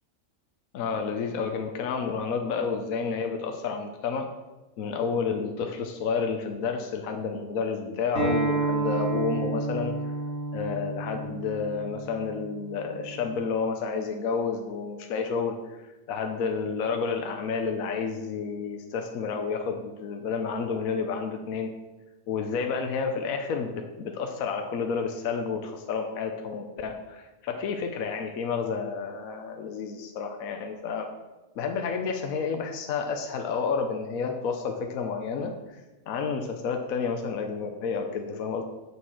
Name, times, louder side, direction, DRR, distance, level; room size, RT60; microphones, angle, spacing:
voice 1, 0.7-4.3 4.8-9.9 10.5-21.7 22.3-31.1 31.6-38.6, left 5 dB, 70° left, 4 dB, 1.2 m, -30 dB
Acoustic guitar, 8.1-13.3, right 3 dB, 65° right, 3.0 m, -31 dB
7.4 x 6.8 x 6.3 m, 1.1 s
omnidirectional pair, 1.6 m